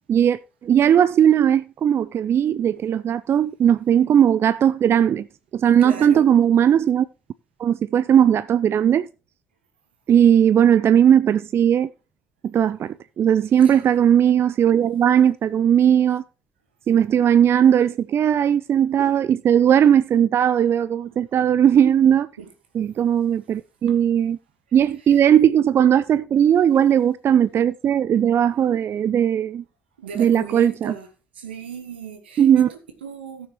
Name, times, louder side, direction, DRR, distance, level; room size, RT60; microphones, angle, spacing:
voice 1, 0.1-5.3 5.5-7.1 7.6-9.1 10.1-11.9 12.5-16.2 16.9-22.3 22.8-24.4 24.7-29.6 30.2-30.9 32.4-32.7, right 9 dB, 50° right, 0.4 m, -18 dB
voice 2, 5.8-6.4 13.5-13.8 22.4-22.5 23.9-24.0 24.7-25.2 30.0-31.1 31.3-33.5, right 6 dB, 90° right, 1.4 m, -37 dB
17.0 x 6.2 x 3.0 m
hypercardioid pair, 50°, 6 cm